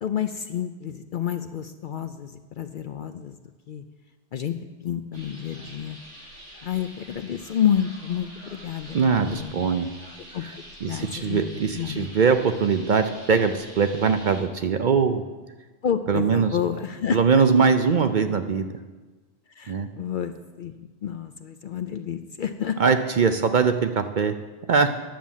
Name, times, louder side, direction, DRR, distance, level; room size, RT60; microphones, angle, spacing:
voice 1, 0.0-3.4 3.7-3.8 4.3-4.6 4.8-6.0 6.6-9.5 10.3-12.1 15.8-17.2 19.6-22.8, left 9 dB, 60° left, 9 dB, 0.6 m, -29 dB
sound 1, 5.1-14.4, equal, 90° right, 2.5 m, -45 dB
voice 2, 8.9-9.9 10.8-15.2 16.1-16.5 17.1-18.7 19.7-19.9 22.8-24.3 24.7-24.9, right 5 dB, 55° right, 8 dB, 0.6 m, -21 dB
10.5 x 7.3 x 7.2 m, 1.3 s
omnidirectional pair, 1.2 m